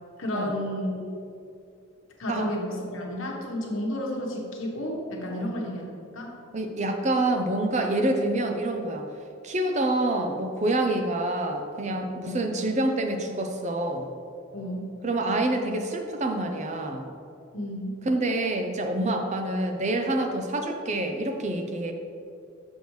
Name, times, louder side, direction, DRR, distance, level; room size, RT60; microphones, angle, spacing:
voice 1, 0.2-1.2 2.2-6.3 12.2-12.4 14.5-14.9 17.5-17.9, left 1 dB, 75° left, -1 dB, 1.1 m, -32 dB
voice 2, 6.5-9.1 9.4-14.1 15.0-17.1 18.1-21.9, right 1 dB, 35° right, 4 dB, 0.5 m, -27 dB
6.8 x 6.2 x 3.2 m, 2.5 s
head